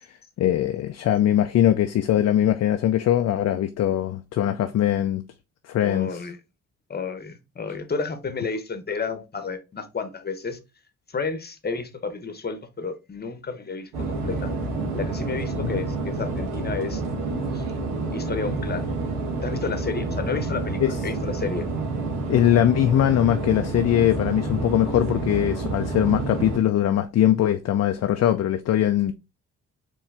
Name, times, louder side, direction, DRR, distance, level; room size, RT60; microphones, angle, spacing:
voice 1, 0.0-5.2 5.6-6.2 15.6-15.7 20.3-20.4 20.8-21.0 22.3-29.1, left 11 dB, 45° left, 0.5 m, -21 dB
voice 2, 5.8-6.4 6.9-10.6 11.1-14.5 14.9-17.0 17.5-17.7 18.1-18.9 19.4-21.7, left 4 dB, 25° left, 1.0 m, -31 dB
sound 1, 13.9-26.6, right 3 dB, 75° right, 1.3 m, -29 dB
4.5 x 3.1 x 3.4 m
hypercardioid pair, 45°, 38 cm